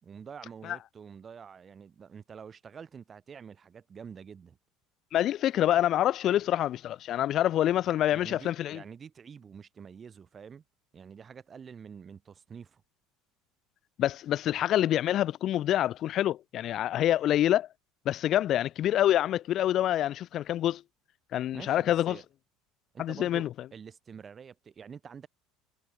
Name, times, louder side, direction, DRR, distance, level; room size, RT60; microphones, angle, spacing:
voice 1, 0.0-4.6 8.1-10.6 10.9-12.8 21.5-22.2 22.9-25.3, right 6 dB, 35° right, 6.8 m, -47 dB
voice 2, 5.1-8.8 14.0-17.7 18.1-20.8 21.3-22.2 23.0-23.5, left 12 dB, 50° left, 0.3 m, -26 dB
hypercardioid pair, 75°, 0 cm